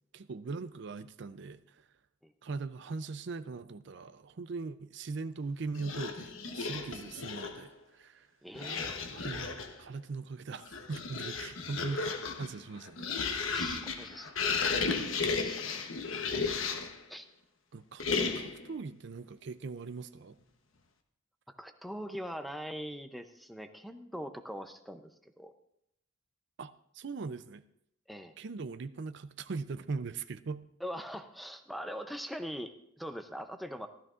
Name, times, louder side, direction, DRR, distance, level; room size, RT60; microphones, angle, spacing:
voice 1, 0.1-1.9 2.4-8.3 8.6-8.8 9.1-9.5 9.8-12.1 12.4-13.1 17.7-18.1 18.3-20.4 26.6-27.6 28.4-30.6, right 4 dB, 60° right, 0.5 m, -40 dB
sound 1, 5.8-7.7 8.5-9.8 10.5-17.0 18.0-18.7, left 4 dB, 85° left, 1.1 m, -34 dB
voice 2, 8.4-9.0 13.5-14.7 15.4-16.4 17.1-17.3 21.5-25.5 28.1-28.3 30.8-33.9, equal, ahead, 0.6 m, -42 dB
15.0 x 13.0 x 2.5 m
head